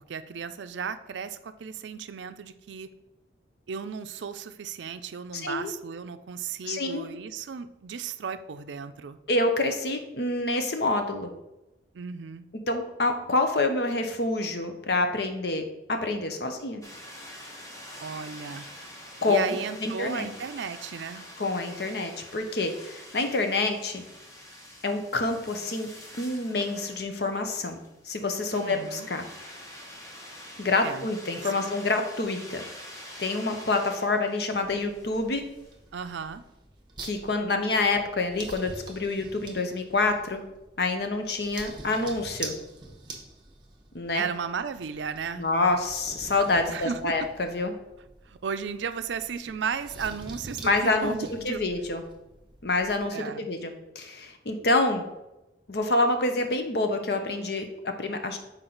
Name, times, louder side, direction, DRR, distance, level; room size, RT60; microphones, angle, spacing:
voice 1, 0.0-2.9 3.7-9.2 11.9-12.4 18.0-18.7 19.3-21.2 28.5-29.1 30.8-31.1 31.4-31.7 35.9-36.4 44.1-45.5 46.7-47.2 48.3-51.6 53.1-53.5, right 6 dB, 75° right, 11 dB, 0.4 m, -35 dB
voice 2, 5.3-5.7 6.7-7.1 9.3-11.3 12.7-16.8 19.2-20.3 21.4-24.0 24.8-25.9 26.2-27.8 28.1-29.2 30.6-32.6 33.2-35.4 37.0-40.4 40.8-42.5 43.9-44.2 45.4-47.7 50.6-51.1 51.4-52.0 52.6-55.0 55.7-58.4, left 2 dB, 60° left, 6 dB, 0.8 m, -27 dB
sound 1, 16.8-35.8, equal, 15° left, 0.9 m, -46 dB
sound 2, 34.6-53.1, right 3 dB, 25° right, 0.9 m, -46 dB
6.0 x 4.5 x 3.9 m, 0.95 s
head